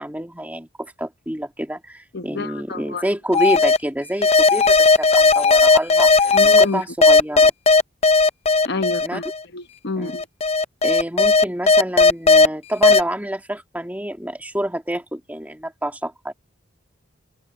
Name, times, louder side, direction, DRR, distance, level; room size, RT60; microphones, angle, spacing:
voice 1, 0.0-7.5 9.0-9.2 10.0-10.2 10.8-16.3, right 1 dB, 10° right, 2.3 m, -27 dB
voice 2, 2.1-3.0 6.3-6.8 8.6-9.2 9.5-10.2, left 3 dB, 55° left, 0.9 m, -28 dB
sound 1, 3.3-3.8 4.2-6.6 7.0-9.4 10.1-12.5 12.8-13.0, left 3 dB, 30° left, 0.5 m, -14 dB
head